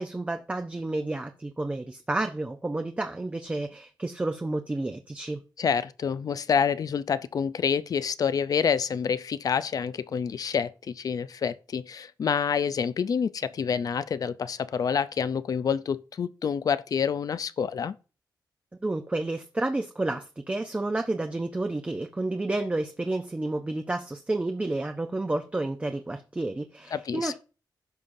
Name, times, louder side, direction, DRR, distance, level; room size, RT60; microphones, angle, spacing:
voice 1, 0.0-5.4 18.8-27.4, right 2 dB, 15° right, 0.6 m, -30 dB
voice 2, 5.6-18.0 26.9-27.4, left 6 dB, 55° left, 0.5 m, -27 dB
16.0 x 5.6 x 2.6 m
wide cardioid pair, 120°, 8 cm